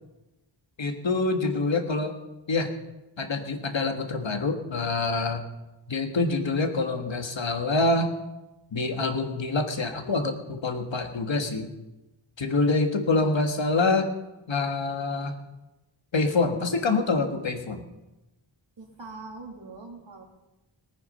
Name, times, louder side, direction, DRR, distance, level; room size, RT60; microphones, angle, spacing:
voice 1, 0.8-2.1 2.5-2.7 3.2-5.4 5.9-8.1 8.7-11.7 12.4-14.1 14.5-15.4 16.1-17.8, left 3 dB, 75° left, 5 dB, 1.7 m, -26 dB
voice 2, 18.8-20.2, right 3 dB, 70° right, 1 dB, 2.9 m, -42 dB
19.0 x 9.5 x 5.6 m, 1.0 s
wide cardioid pair, 60°, 46 cm